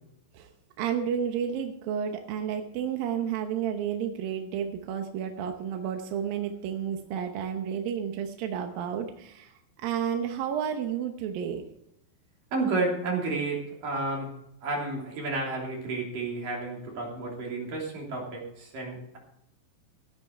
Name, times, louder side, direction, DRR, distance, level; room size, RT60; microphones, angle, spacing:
voice 1, 0.8-9.5 9.8-11.6, right 8 dB, 70° right, 4 dB, 2.3 m, -31 dB
voice 2, 12.5-14.3 14.6-19.2, right 3 dB, 50° right, -1 dB, 4.6 m, -31 dB
16.0 x 10.5 x 4.6 m, 0.79 s
omnidirectional pair, 5.3 m